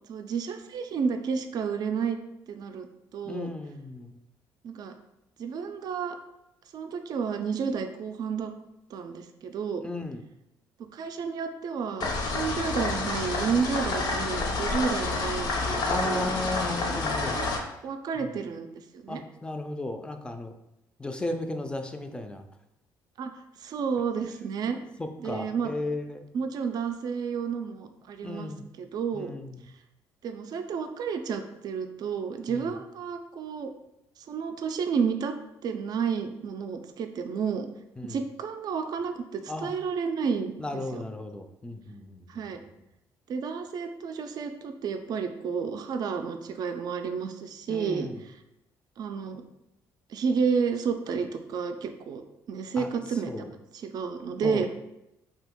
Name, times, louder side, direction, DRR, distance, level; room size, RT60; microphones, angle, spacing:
voice 1, 0.1-2.2 2.5-2.9 3.1-3.5 4.6-4.9 5.4-6.2 6.7-8.5 8.9-9.8 10.8-16.3 16.9-17.5 17.8-18.7 18.9-19.2 23.2-23.3 23.6-24.8 25.2-25.7 26.3-28.5 28.8-29.3 30.2-33.7 34.3-35.3 35.6-37.7 38.0-41.0 42.3-42.6 43.3-48.1 49.0-49.4 50.1-52.2 52.5-53.5 53.7-54.7, right 6 dB, 55° right, 7 dB, 0.4 m, -31 dB
voice 2, 3.3-4.1 9.8-10.2 15.8-17.4 18.2-18.3 19.1-20.5 21.0-22.4 25.0-26.2 28.2-28.7 29.1-29.7 32.5-32.7 38.0-38.2 39.5-39.7 40.6-42.3 47.7-48.2 52.8-52.9 53.3-53.5 54.4-54.7, left 2 dB, 10° left, 6 dB, 0.4 m, -35 dB
sound 1, 12.0-17.6, left 3 dB, 60° left, 0.6 m, -29 dB
2.8 x 2.6 x 3.6 m, 0.87 s
supercardioid pair, 80°, 8 cm